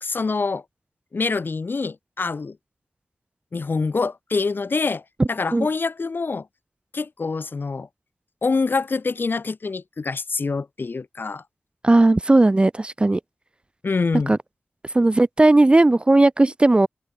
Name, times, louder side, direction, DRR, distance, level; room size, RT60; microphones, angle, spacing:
voice 1, 0.0-0.6 1.1-2.6 3.5-5.0 5.3-6.5 6.9-7.9 8.4-11.4 13.8-14.4, left 4 dB, 60° left, 1.1 m, -25 dB
voice 2, 5.2-5.7 11.8-13.2 14.3-14.4 14.9-16.9, right 2 dB, 25° right, 0.4 m, -16 dB
open air
wide cardioid pair, 60°, 4 cm